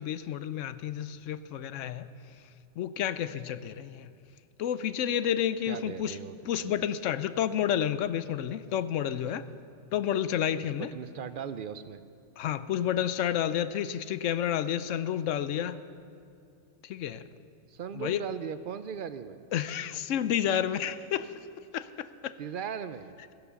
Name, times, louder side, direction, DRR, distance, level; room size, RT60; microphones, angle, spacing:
voice 1, 0.0-2.1 2.8-4.1 4.6-6.2 6.5-9.4 9.9-10.9 12.4-15.8 16.8-17.2 18.0-18.2 19.5-21.3 21.7-22.3, left 10 dB, 75° left, 14 dB, 0.9 m, -30 dB
voice 2, 5.7-6.8 10.6-12.0 17.7-19.4 22.4-23.2, right 7 dB, 60° right, 12 dB, 0.6 m, -38 dB
15.5 x 10.5 x 6.9 m, 2.5 s
omnidirectional pair, 1.3 m